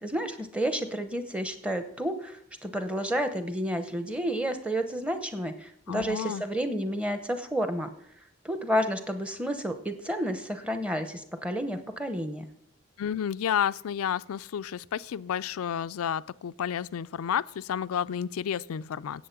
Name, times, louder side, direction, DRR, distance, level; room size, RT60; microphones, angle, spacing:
voice 1, 0.0-7.9 8.4-12.4, equal, 5° right, 0.8 m, -30 dB
voice 2, 5.9-6.4 13.0-19.3, left 8 dB, 75° left, 0.3 m, -31 dB
10.0 x 8.2 x 5.9 m
head